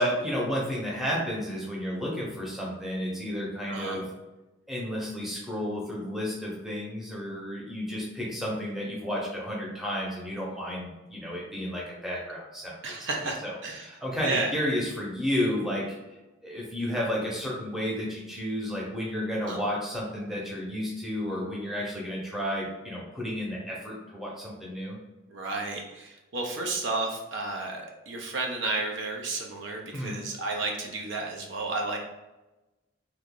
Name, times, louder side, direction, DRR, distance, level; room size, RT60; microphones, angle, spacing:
voice 1, 0.0-4.0 4.7-12.8 13.2-15.8 16.4-25.0 29.9-30.2, equal, ahead, -5 dB, 0.7 m, -32 dB
voice 2, 3.7-4.0 12.8-13.8 14.2-14.5 19.4-19.6 25.3-32.0, right 3 dB, 65° right, 1 dB, 0.5 m, -32 dB
2.9 x 2.4 x 3.6 m, 1.0 s
head